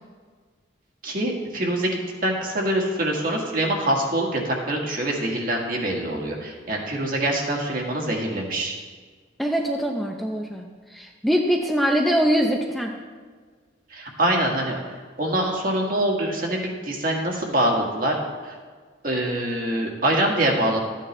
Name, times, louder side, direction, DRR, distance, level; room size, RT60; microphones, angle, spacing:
voice 1, 1.0-8.8 13.9-14.8 15.2-18.6 19.0-20.8, right 1 dB, 50° right, 0 dB, 1.7 m, -24 dB
voice 2, 9.4-12.9, equal, ahead, 0 dB, 0.6 m, -23 dB
13.5 x 8.9 x 3.3 m, 1.5 s
head